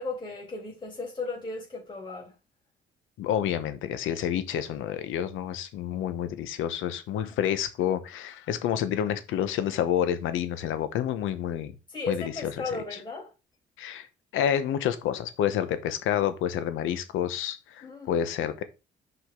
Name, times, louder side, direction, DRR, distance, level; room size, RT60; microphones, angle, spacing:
voice 1, 0.0-2.3 7.2-7.3 11.9-13.3 17.8-18.2, left 3 dB, 25° left, 3.2 m, -35 dB
voice 2, 3.2-11.7 12.1-12.3 12.6-12.7 13.8-14.1 14.3-18.6, left 10 dB, 90° left, 0.9 m, -29 dB
6.3 x 5.0 x 3.7 m
cardioid pair, 90°, 20 cm